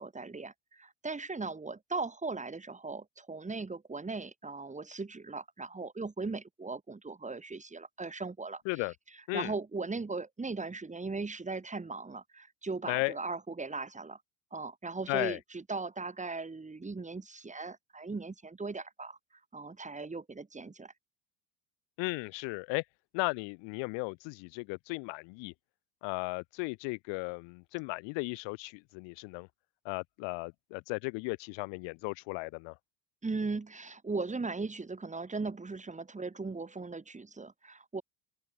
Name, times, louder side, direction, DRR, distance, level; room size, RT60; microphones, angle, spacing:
voice 1, 0.0-14.2 14.5-19.2 19.5-20.9 33.2-38.0, right 3 dB, 15° right, 2.3 m, -38 dB
voice 2, 15.1-15.4 22.0-22.8 23.1-25.5 26.0-29.5 29.8-32.7, left 30 dB, 65° left, 0.8 m, -35 dB
open air
supercardioid pair, 85°, 47 cm